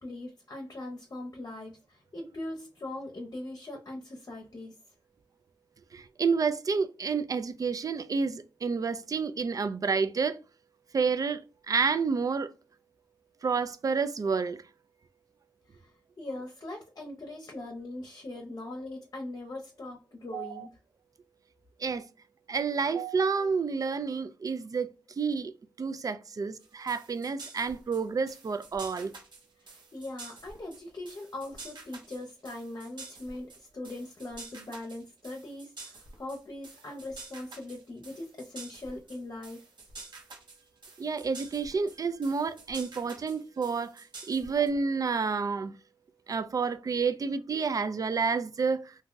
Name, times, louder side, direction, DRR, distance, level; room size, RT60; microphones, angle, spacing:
voice 1, 0.0-4.8 15.7-20.7 29.6-39.6, left 2 dB, 45° left, 0.7 m, -41 dB
voice 2, 5.9-10.4 10.9-12.5 13.4-14.6 20.3-20.7 21.8-22.0 22.5-24.9 25.2-25.5 25.8-29.1 41.0-45.7 46.3-48.9, right 5 dB, 45° right, 0.4 m, -29 dB
sound 1, 26.6-44.7, right 3 dB, 70° right, 1.0 m, -48 dB
2.6 x 2.2 x 3.7 m
cardioid pair, 70°, 8 cm